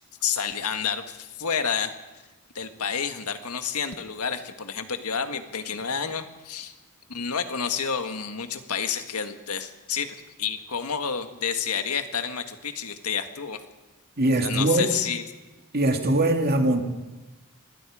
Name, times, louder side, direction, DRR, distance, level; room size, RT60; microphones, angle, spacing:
voice 1, 0.2-1.9 2.5-6.7 7.1-13.6 14.4-15.2, left 7 dB, 85° left, 7 dB, 1.7 m, -29 dB
voice 2, 14.2-14.9 15.7-16.8, right 1 dB, 45° right, 4 dB, 2.3 m, -21 dB
25.5 x 21.0 x 5.0 m, 1.1 s
head